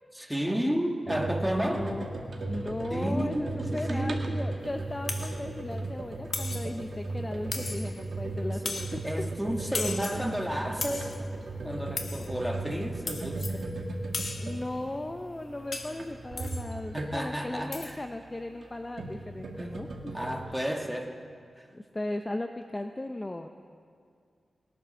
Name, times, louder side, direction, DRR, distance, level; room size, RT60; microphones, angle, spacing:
voice 1, 0.2-2.0 2.9-4.3 9.0-11.1 11.6-13.7 16.9-18.0 19.6-19.7 20.1-21.2, equal, ahead, 2 dB, 1.4 m, -32 dB
sound 1, 1.1-17.4 18.5-20.4, right 2 dB, 60° right, 1.6 m, -36 dB
voice 2, 1.6-2.1 2.5-9.0 14.4-20.6 21.7-23.5, left 1 dB, 20° left, 6 dB, 0.5 m, -37 dB
sound 2, 5.1-5.4 6.3-6.7 7.5-8.0 8.7-9.0 9.7-10.3 10.8-11.2 12.0-12.3 13.1-13.6 14.1-14.5 15.7-16.0 16.4-16.7 17.7-17.9, left 3 dB, 55° left, 1.3 m, -36 dB
20.5 x 9.9 x 6.4 m, 2.2 s
wide cardioid pair, 140°, 0 cm